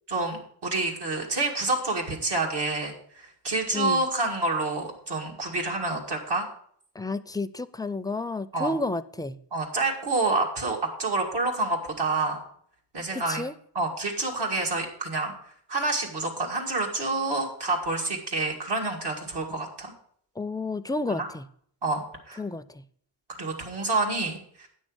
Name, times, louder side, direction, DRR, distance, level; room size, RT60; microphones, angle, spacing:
voice 1, 0.1-6.5 8.5-8.7 9.5-12.4 12.9-13.4 13.7-15.3 15.7-19.9 21.2-21.3 21.8-22.4 23.4-24.7, right 2 dB, 80° right, 0 dB, 2.2 m, -28 dB
voice 2, 3.7-4.0 7.0-9.4 13.1-13.5 20.4-21.5 22.4-22.8, left 2 dB, 10° left, 12 dB, 0.4 m, -31 dB
9.1 x 6.4 x 6.2 m, 0.63 s
wide cardioid pair, 90°, 40 cm